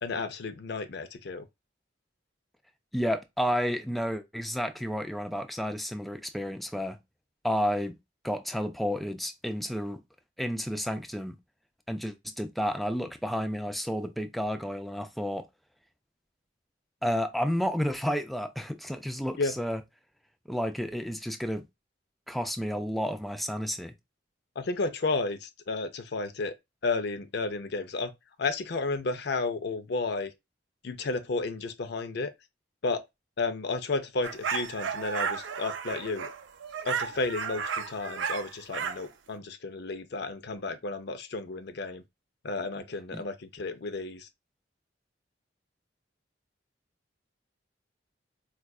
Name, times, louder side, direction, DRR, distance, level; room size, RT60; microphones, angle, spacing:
voice 1, 0.0-1.5 19.4-19.5 24.6-26.6 26.8-28.1 28.4-30.3 30.8-32.3 32.8-33.0 33.4-36.3 36.8-42.0 42.4-44.3, left 3 dB, 60° left, 0.5 m, -32 dB
voice 2, 2.9-7.0 7.4-8.0 8.2-10.0 10.4-11.4 11.9-15.5 17.0-19.8 20.5-21.7 22.3-23.9 43.1-43.2, equal, ahead, 0.3 m, -31 dB
sound 1, 34.2-39.1, right 6 dB, 70° right, 0.5 m, -33 dB
4.5 x 2.4 x 2.3 m
head